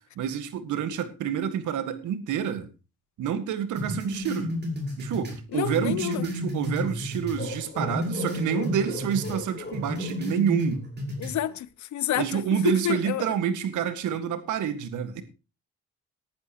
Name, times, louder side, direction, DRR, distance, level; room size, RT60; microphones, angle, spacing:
voice 1, 0.2-2.7 3.2-4.5 5.0-10.8 12.2-15.2, right 8 dB, 80° right, 1.8 m, -28 dB
sound 1, 3.8-7.4 7.8-9.4 9.7-11.4, left 1 dB, 35° right, 5.4 m, -32 dB
voice 2, 5.5-6.2 11.2-12.4 12.8-13.3, left 12 dB, 70° left, 0.8 m, -29 dB
sound 2, 7.4-11.1, left 3 dB, 35° left, 4.2 m, -39 dB
19.0 x 11.0 x 3.0 m
cardioid pair, 90°, 30 cm